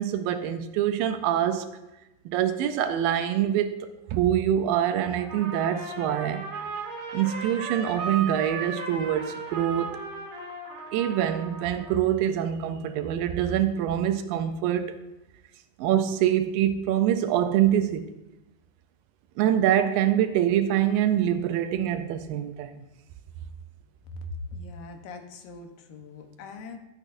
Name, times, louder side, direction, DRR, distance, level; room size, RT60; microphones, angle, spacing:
voice 1, 0.0-1.7 2.3-6.5 7.1-10.0 10.9-15.0 15.8-18.1 19.4-22.7, right 10 dB, 80° right, 9 dB, 2.2 m, -25 dB
Trumpet, 5.2-11.9, right 4 dB, 60° right, 3.0 m, -36 dB
voice 2, 24.5-26.8, left 2 dB, 80° left, 5 dB, 2.7 m, -42 dB
13.5 x 8.9 x 2.6 m, 0.96 s
omnidirectional pair, 4.1 m